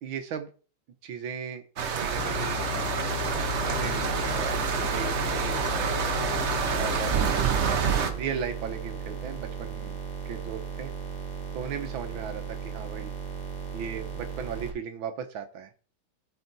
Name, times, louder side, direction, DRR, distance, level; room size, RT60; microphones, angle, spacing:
voice 1, 0.0-0.5 1.0-1.6 1.9-2.6 3.6-6.2 6.7-7.5 8.1-10.0 10.3-10.9 11.5-13.1 13.7-15.7, right 7 dB, 75° right, 7 dB, 1.8 m, -37 dB
sound 1, 1.8-8.1, right 6 dB, 55° right, 0.8 m, -28 dB
sound 2, 2.2-7.3, left 12 dB, 85° left, 1.6 m, -35 dB
sound 3, 3.3-14.7, right 6 dB, 20° left, 1.8 m, -36 dB
13.0 x 4.7 x 4.2 m, 0.37 s
omnidirectional pair, 2.3 m